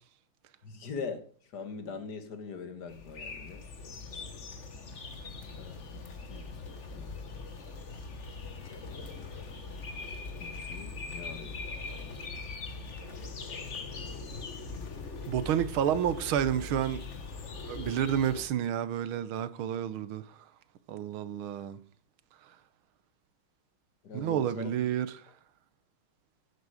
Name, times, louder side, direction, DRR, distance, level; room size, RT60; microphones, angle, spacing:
voice 1, 0.6-1.2 1.5-3.7 5.6-7.2 10.4-12.2 24.0-24.7, left 5 dB, 55° left, 2.1 m, -42 dB
sound 1, 2.9-18.4, left 4 dB, 40° left, 1.5 m, -41 dB
voice 2, 15.3-17.0 17.7-20.2 20.9-21.8 24.1-25.1, right 10 dB, 80° right, 1.7 m, -30 dB
11.0 x 9.6 x 5.0 m
omnidirectional pair, 2.3 m